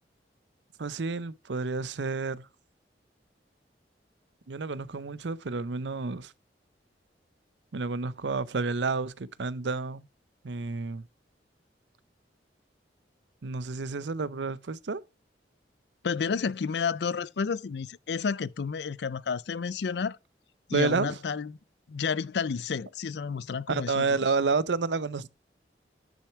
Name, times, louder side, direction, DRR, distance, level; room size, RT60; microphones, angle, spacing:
voice 1, 0.8-2.5 4.5-6.3 7.7-10.1 10.4-11.1 13.4-15.0 20.7-21.2 23.7-25.3, right 4 dB, 80° right, 0.7 m, -30 dB
voice 2, 16.0-20.2 20.7-21.6 21.9-24.1, left 5 dB, 70° left, 0.4 m, -31 dB
10.0 x 6.2 x 4.6 m
head